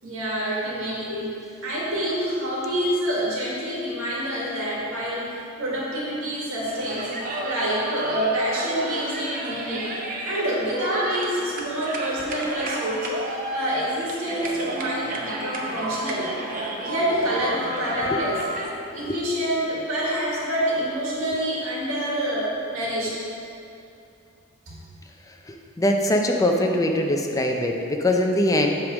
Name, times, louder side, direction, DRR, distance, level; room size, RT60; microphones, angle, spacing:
voice 1, 0.0-7.1 7.4-9.9 10.2-16.3 16.8-18.4 18.9-23.2 24.7-24.8, equal, 85° right, -5 dB, 1.7 m, -27 dB
sound 1, 6.7-18.7, right 1 dB, 40° right, 0.7 m, -32 dB
voice 2, 25.5-28.8, left 1 dB, 15° left, 2 dB, 0.5 m, -22 dB
8.1 x 3.5 x 6.1 m, 2.7 s
head